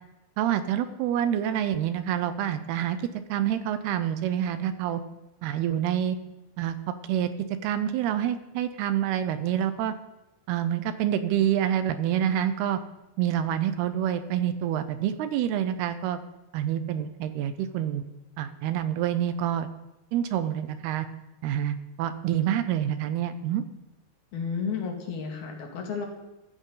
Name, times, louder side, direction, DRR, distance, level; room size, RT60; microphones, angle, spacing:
voice 1, 0.4-3.0 3.3-5.0 5.4-6.2 6.6-6.8 7.1-7.3 7.6-9.9 10.5-12.8 13.2-16.2 16.5-18.0 18.4-19.7 20.1-21.1 21.4-23.6, right 10 dB, 80° right, 11 dB, 2.6 m, -27 dB
voice 2, 24.3-26.1, left 6 dB, 65° left, 2 dB, 3.9 m, -32 dB
14.5 x 14.5 x 3.9 m, 1.0 s
omnidirectional pair, 4.8 m